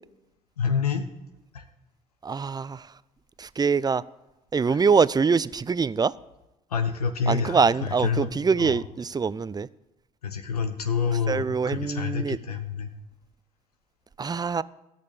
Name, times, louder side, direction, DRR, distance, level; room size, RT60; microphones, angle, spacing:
voice 1, 0.6-1.0 1.5-1.6 4.6-4.8 6.7-8.3 8.6-8.8 10.2-12.9, left 6 dB, 90° left, 0.8 m, -28 dB
voice 2, 2.2-2.8 3.4-4.0 4.5-6.1 7.3-9.7 11.3-12.4 14.2-14.6, right 5 dB, 20° right, 0.5 m, -24 dB
14.5 x 6.7 x 8.4 m
hypercardioid pair, 50°, 19 cm